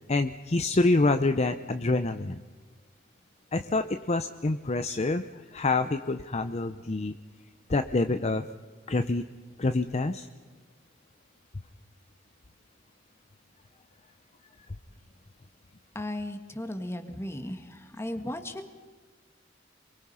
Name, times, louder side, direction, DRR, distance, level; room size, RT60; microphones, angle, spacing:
voice 1, 0.1-2.4 3.5-7.1 7.7-8.5 8.9-9.2 9.6-10.3, left 2 dB, 35° left, 8 dB, 0.7 m, -26 dB
voice 2, 15.9-18.6, left 1 dB, 15° left, 7 dB, 1.9 m, -36 dB
27.5 x 23.0 x 5.7 m, 1.4 s
head